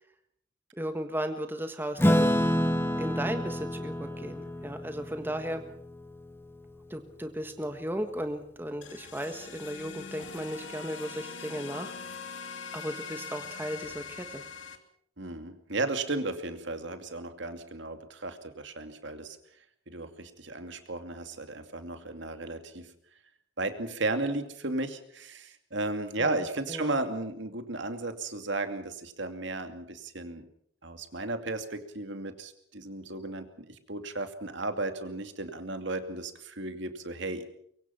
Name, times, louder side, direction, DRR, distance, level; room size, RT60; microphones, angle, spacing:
voice 1, 0.7-2.3 3.0-5.6 6.9-11.9 12.7-14.4 26.2-27.0, equal, 10° right, 7 dB, 1.4 m, -35 dB
Acoustic guitar / Strum, 2.0-6.8, equal, 10° left, 1.3 m, -28 dB
sound 1, 8.8-14.8, left 5 dB, 70° left, 2.7 m, -42 dB
voice 2, 15.2-19.4 19.9-22.9 23.6-30.5 30.8-37.4, right 2 dB, 60° right, 7 dB, 2.5 m, -34 dB
24.0 x 23.5 x 5.9 m, 0.68 s
head